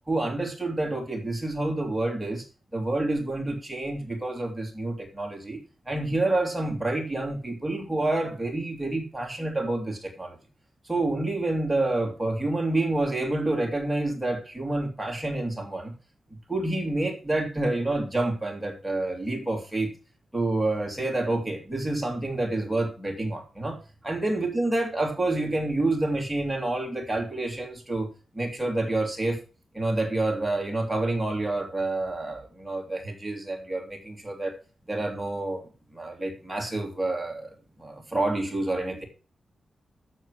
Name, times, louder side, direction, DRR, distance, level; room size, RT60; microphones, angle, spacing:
voice 1, 0.1-2.4 2.7-10.4 10.9-15.9 16.5-19.9 20.3-29.4 29.7-34.6 34.9-39.0, right 2 dB, 5° right, 1 dB, 2.4 m, -28 dB
7.3 x 6.7 x 6.2 m, 0.35 s
wide cardioid pair, 160°, 0 cm